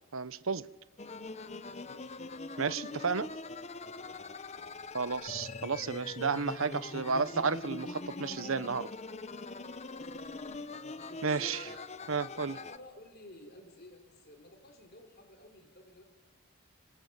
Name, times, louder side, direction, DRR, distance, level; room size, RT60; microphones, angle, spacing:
voice 1, 0.1-0.6 2.6-3.3 4.9-8.9 11.2-11.6 12.1-12.5, right 5 dB, 65° right, 1.0 m, -32 dB
sound 1, 1.0-12.8, left 3 dB, 30° left, 0.9 m, -43 dB
voice 2, 1.6-2.2 4.0-4.3 9.8-11.9 12.3-16.0, left 1 dB, 45° left, 4.1 m, -53 dB
26.0 x 26.0 x 8.2 m
head